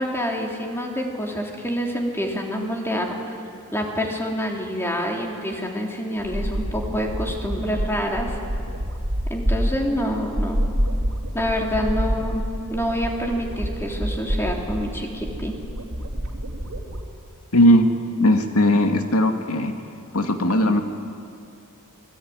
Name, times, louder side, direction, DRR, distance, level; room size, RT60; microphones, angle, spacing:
voice 1, 0.0-3.1 3.7-8.3 9.3-10.6 11.3-12.4 12.7-15.6, equal, 10° left, 0 dB, 3.5 m, -27 dB
sound 1, 6.2-17.0, equal, 85° right, 3.5 m, -27 dB
voice 2, 17.5-17.8 18.2-19.7 20.1-20.8, left 1 dB, 85° left, 5 dB, 2.3 m, -18 dB
28.0 x 20.5 x 9.6 m, 2.5 s
head